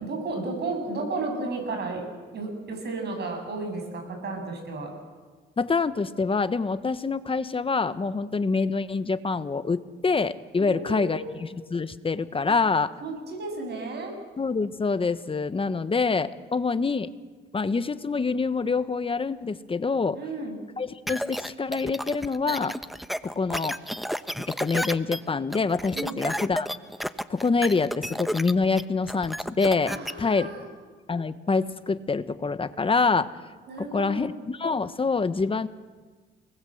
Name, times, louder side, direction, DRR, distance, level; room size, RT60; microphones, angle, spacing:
voice 1, 0.0-2.0 2.3-4.9 10.6-11.3 12.5-12.6 13.0-14.1 20.1-20.6 25.9-26.2 29.9-30.7 33.7-34.3, right 3 dB, 55° right, 3 dB, 7.8 m, -33 dB
voice 2, 5.6-12.9 14.4-17.1 17.5-20.2 20.8-22.8 23.2-23.8 24.4-26.7 27.3-30.5 31.1-33.3 33.8-35.7, left 4 dB, 25° left, 13 dB, 1.2 m, -26 dB
sound 1, 21.1-30.1, equal, ahead, 1.0 m, -32 dB
30.0 x 20.5 x 7.9 m, 1.4 s
cardioid pair, 90°, 20 cm